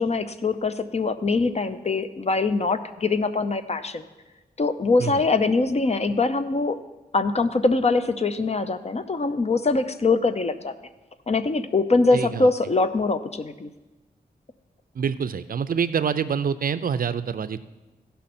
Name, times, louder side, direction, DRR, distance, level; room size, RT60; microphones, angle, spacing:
voice 1, 0.0-4.0 4.6-6.8 7.1-10.7 11.3-13.7, left 3 dB, 40° left, 10 dB, 0.6 m, -23 dB
voice 2, 12.1-12.5 14.9-17.6, right 7 dB, 60° right, 14 dB, 0.4 m, -26 dB
16.0 x 5.6 x 4.3 m, 1.1 s
wide cardioid pair, 75°, 17 cm